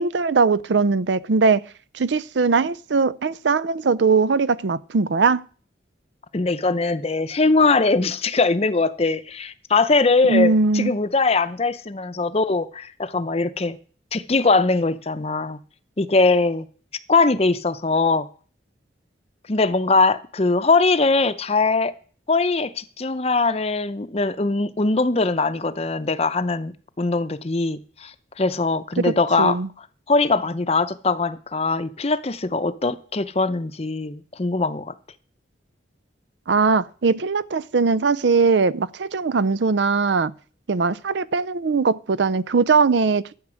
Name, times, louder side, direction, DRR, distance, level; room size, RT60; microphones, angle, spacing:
voice 1, 0.0-1.6 1.9-5.4 10.3-10.9 29.0-29.1 29.4-29.7 36.5-40.3 40.7-43.4, right 4 dB, 75° right, 0.5 m, -20 dB
voice 2, 6.3-13.8 14.1-15.6 16.0-16.7 17.1-18.3 19.5-21.9 22.3-29.6 30.1-34.9, left 3 dB, 35° left, 0.7 m, -21 dB
12.0 x 8.7 x 6.3 m
head